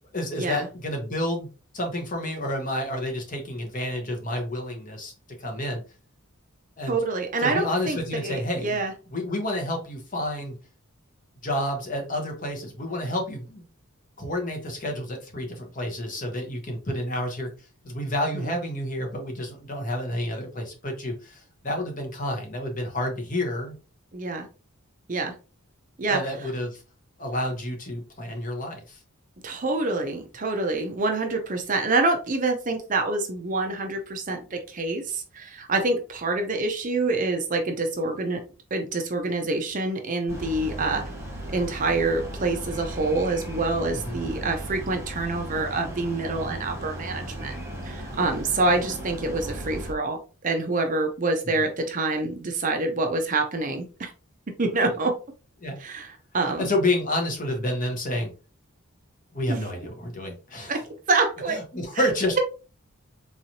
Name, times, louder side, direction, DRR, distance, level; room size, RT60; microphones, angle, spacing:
voice 1, 0.1-1.5 1.7-5.1 5.4-5.8 6.8-7.0 7.4-8.8 9.1-10.6 11.4-13.7 14.2-17.5 17.8-23.7 26.1-26.8 27.2-29.0 43.9-44.2 55.6-55.8 56.6-58.3 59.3-60.8 61.5-62.4, left 1 dB, 35° left, 2 dB, 1.0 m, -29 dB
voice 2, 6.9-8.9 18.3-18.5 24.1-24.5 25.1-25.3 26.0-26.2 29.4-38.4 38.7-41.0 41.5-47.6 47.8-54.1 54.6-55.1 55.8-56.7 59.5-59.7 60.7-60.8 61.1-61.6, right 3 dB, 35° right, 4 dB, 0.6 m, -26 dB
sound 1, 40.3-49.9, right 1 dB, 10° right, 0.9 m, -36 dB
3.8 x 3.0 x 2.7 m, 0.34 s
head